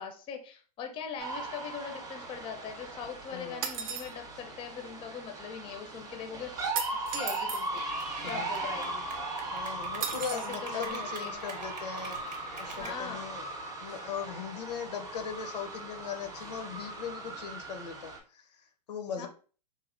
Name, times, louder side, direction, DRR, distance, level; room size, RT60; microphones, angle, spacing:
voice 1, 0.0-6.5 6.9-7.8 8.3-9.0 10.3-11.4 12.7-13.3 19.2-19.3, left 7 dB, 25° left, 5 dB, 0.5 m, -41 dB
sound 1, 1.2-18.2, right 2 dB, 15° right, 0.7 m, -39 dB
voice 2, 3.3-3.7 8.2-8.5 9.5-13.5 13.8-19.3, left 7 dB, 75° left, 6 dB, 0.6 m, -39 dB
sound 2, 3.6-4.1 6.8-7.6 10.0-10.5, right 7 dB, 55° right, 0.6 m, -35 dB
Clapping / Cheering, 7.7-12.9, right 3 dB, 85° right, 0.8 m, -43 dB
3.2 x 2.4 x 2.5 m, 0.39 s
hypercardioid pair, 115°, 21 cm